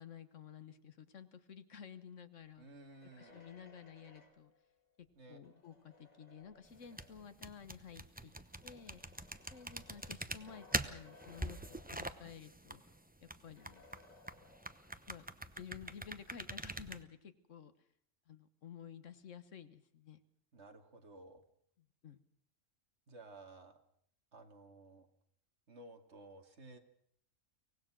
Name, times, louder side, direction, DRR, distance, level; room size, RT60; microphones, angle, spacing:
voice 1, 0.0-2.7 3.2-4.5 5.0-8.3 8.6-9.0 9.5-12.8 13.2-13.8 14.4-14.5 15.1-15.3 15.6-17.7 18.3-20.2 22.0-22.2, left 7 dB, 70° left, 11 dB, 1.6 m, -53 dB
voice 2, 2.6-3.4 5.2-5.4 20.5-21.4 23.1-23.8 24.3-25.1 25.7-26.8, right 2 dB, 60° right, 5 dB, 2.4 m, -55 dB
sound 1, 2.7-7.4 8.3-12.5 12.8-12.9 13.6-15.1, left 2 dB, 30° left, 2.7 m, -63 dB
sound 2, 6.7-17.0, right 1 dB, 10° right, 0.7 m, -44 dB
24.0 x 18.5 x 6.2 m, 0.66 s
omnidirectional pair, 1.3 m